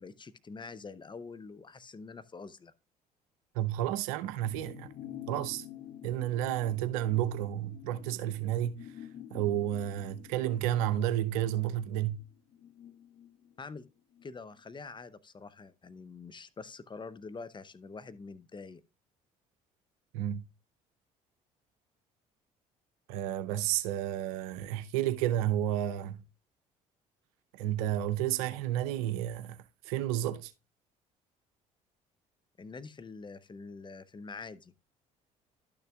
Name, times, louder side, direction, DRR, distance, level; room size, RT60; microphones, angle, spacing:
voice 1, 0.0-2.7 13.6-13.8 14.2-18.8 32.6-34.7, left 4 dB, 25° left, 0.7 m, -45 dB
voice 2, 3.5-4.9 5.3-5.6 6.0-8.9 9.3-12.2 20.1-20.5 23.1-26.2 27.5-29.6 29.8-30.5, right 12 dB, 80° right, 0.6 m, -31 dB
sound 1, 4.4-14.3 14.6-14.7, left 10 dB, 60° left, 0.9 m, -49 dB
11.5 x 6.6 x 2.3 m
hypercardioid pair, 55°, 18 cm